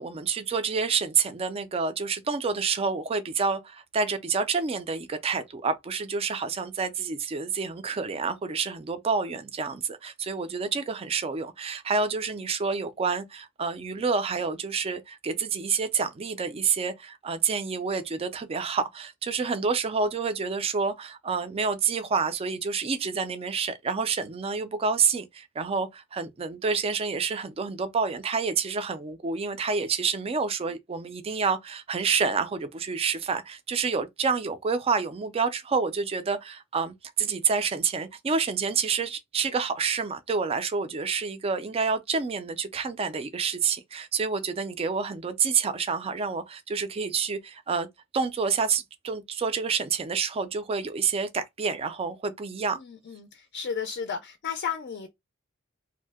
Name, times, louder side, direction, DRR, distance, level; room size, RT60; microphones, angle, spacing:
voice 1, 0.0-47.9 48.1-52.8, right 5 dB, 30° right, 0.4 m, -28 dB
voice 2, 52.7-55.1, left 7 dB, 55° left, 0.4 m, -33 dB
2.7 x 2.1 x 3.3 m
head